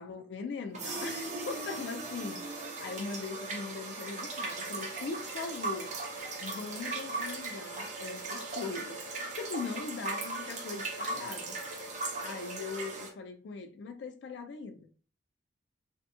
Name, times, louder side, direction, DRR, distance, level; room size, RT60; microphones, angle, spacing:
voice 1, 0.0-2.5 2.8-5.9 6.4-11.9 12.2-14.9, left 4 dB, 70° left, 0.3 m, -40 dB
sound 1, 0.7-13.1, right 3 dB, 40° right, 0.6 m, -38 dB
2.7 x 2.5 x 2.3 m
head